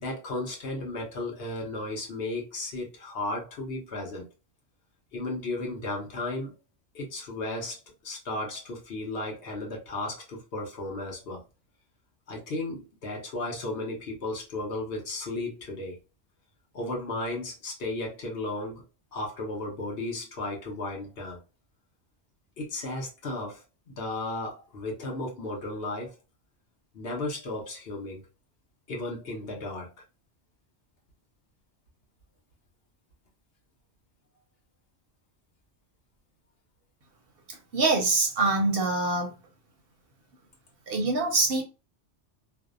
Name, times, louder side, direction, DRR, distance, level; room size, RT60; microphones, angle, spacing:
voice 1, 0.0-4.2 5.1-6.5 6.9-11.4 12.3-16.0 16.7-18.8 19.1-21.4 22.6-26.1 26.9-28.2 28.9-29.9, left 2 dB, 60° left, 0.9 m, -34 dB
voice 2, 37.5-39.3 40.9-41.6, right 3 dB, 60° right, 0.7 m, -25 dB
2.6 x 2.1 x 2.4 m
omnidirectional pair, 1.2 m